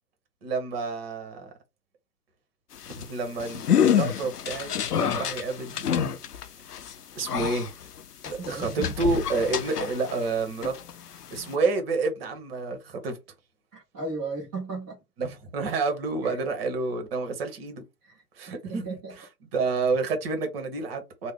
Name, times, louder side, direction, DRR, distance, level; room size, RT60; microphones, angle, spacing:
voice 1, 0.4-1.5 2.9-6.1 7.2-7.7 8.3-10.7 11.3-13.2 15.2-17.8 18.4-19.3 19.5-21.3, right 4 dB, 40° right, 1.1 m, -29 dB
sound 1, 2.7-10.3 10.6-11.6, left 8 dB, 75° left, 0.6 m, -28 dB
voice 2, 8.2-8.9 13.7-15.0 16.2-16.4 18.0-19.1, right 3 dB, 10° right, 0.4 m, -36 dB
3.1 x 2.2 x 3.6 m
figure-of-eight pair, 115°, 46 cm